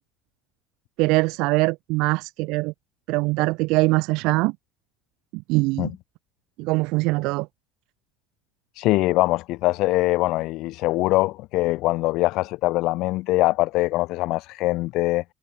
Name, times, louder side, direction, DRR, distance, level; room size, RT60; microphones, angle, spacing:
voice 1, 1.0-2.7 3.1-4.5 5.3-5.9 6.6-7.5, right 24 dB, 75° right, 1.0 m, -22 dB
voice 2, 8.7-15.2, left 19 dB, 70° left, 0.4 m, -22 dB
cardioid pair, 130°, 0 cm